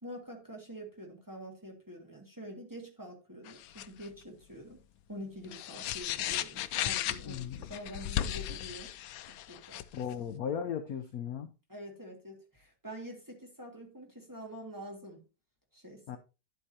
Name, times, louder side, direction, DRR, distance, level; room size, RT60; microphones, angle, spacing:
voice 1, 0.0-4.8 5.1-8.9 9.3-9.8 10.1-10.3 11.7-15.2 15.7-16.2, equal, 10° right, 1.9 m, -46 dB
sound 1, 3.5-4.1 5.4-10.1, left 12 dB, 85° left, 1.4 m, -36 dB
voice 2, 7.2-7.6 9.9-11.5 16.1-16.2, left 8 dB, 65° left, 0.9 m, -36 dB
10.5 x 8.1 x 2.8 m
omnidirectional pair, 2.2 m